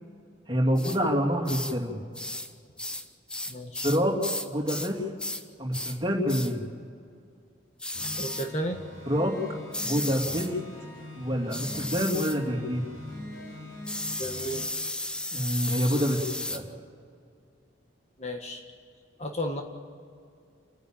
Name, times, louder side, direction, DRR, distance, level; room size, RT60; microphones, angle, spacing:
voice 1, 0.5-2.0 3.8-4.2 4.5-5.0 5.6-6.6 9.1-9.4 9.8-10.6 11.2-12.9 15.3-16.6, equal, 25° right, -1 dB, 3.0 m, -27 dB
sound 1, 0.8-1.0 1.4-1.8 2.1-2.5 2.8-4.9 5.2-5.4 5.7-6.0 6.3-6.5 7.8-8.5 9.7-10.5 11.5-12.4 13.9-16.6, left 1 dB, 5° left, 0.6 m, -34 dB
voice 2, 3.5-3.9 8.2-8.8 14.2-14.6 18.2-18.6 19.2-19.6, equal, 35° left, 3 dB, 1.5 m, -33 dB
sound 2, 7.9-14.7, left 1 dB, 85° left, 6.8 m, -42 dB
29.5 x 10.5 x 9.1 m, 2.3 s
head